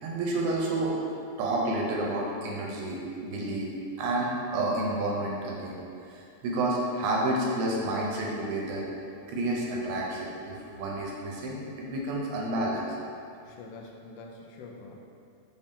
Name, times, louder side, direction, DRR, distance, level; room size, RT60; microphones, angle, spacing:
voice 1, 0.0-1.0 1.4-3.7 4.0-5.8 6.1-8.9 9.3-12.9, right 2 dB, 85° right, -2 dB, 2.1 m, -30 dB
voice 2, 13.5-15.0, left 3 dB, 90° left, 0 dB, 2.1 m, -45 dB
5.4 x 2.7 x 3.4 m, 2.6 s
omnidirectional pair, 3.5 m